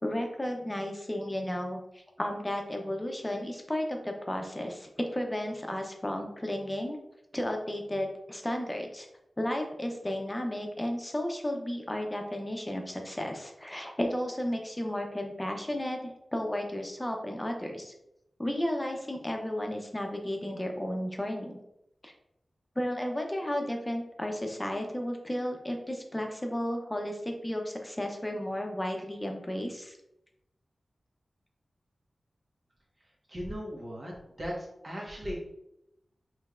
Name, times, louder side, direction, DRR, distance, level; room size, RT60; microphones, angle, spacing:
voice 1, 0.0-7.0 7.3-9.1 9.4-17.9 18.4-21.6 22.0-22.1 22.8-30.0, left 1 dB, 20° left, 2 dB, 0.8 m, -33 dB
voice 2, 33.3-34.1 34.4-35.4, equal, 40° right, -3 dB, 1.5 m, -37 dB
5.0 x 3.3 x 2.5 m, 0.83 s
cardioid pair, 55°, 0 cm